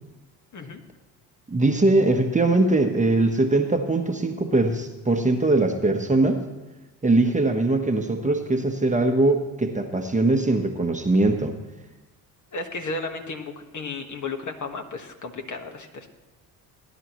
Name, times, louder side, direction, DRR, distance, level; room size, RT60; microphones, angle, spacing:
voice 1, 1.5-6.4 7.0-11.6, right 2 dB, 15° right, 4 dB, 1.2 m, -21 dB
voice 2, 12.5-16.1, left 3 dB, 40° left, 4 dB, 1.5 m, -34 dB
19.5 x 10.5 x 3.1 m, 1.1 s
supercardioid pair, 65°, 46 cm